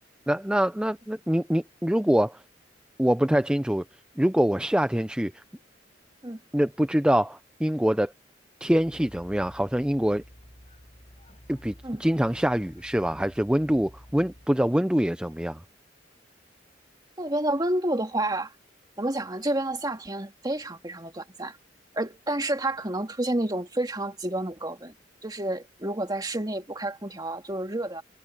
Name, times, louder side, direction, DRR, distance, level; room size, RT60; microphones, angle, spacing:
voice 1, 0.3-2.4 3.0-3.8 4.2-5.4 6.5-8.1 8.6-10.2 11.5-11.7 12.0-15.6, equal, 5° right, 0.5 m, -24 dB
sound 1, 8.7-14.5, equal, 35° left, 5.8 m, -51 dB
voice 2, 17.2-18.5 19.0-21.6 21.9-24.9 25.2-28.0, right 1 dB, 20° right, 2.4 m, -29 dB
head